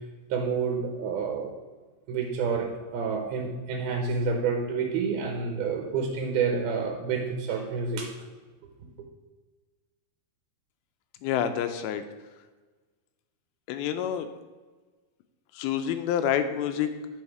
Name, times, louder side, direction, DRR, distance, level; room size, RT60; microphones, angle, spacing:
voice 1, 0.3-1.5 2.1-8.1, right 5 dB, 75° right, 2 dB, 2.8 m, -29 dB
voice 2, 11.2-12.0 13.7-14.3 15.5-17.0, left 9 dB, 80° left, 9 dB, 2.3 m, -28 dB
9.5 x 5.6 x 4.7 m, 1.3 s
omnidirectional pair, 4.5 m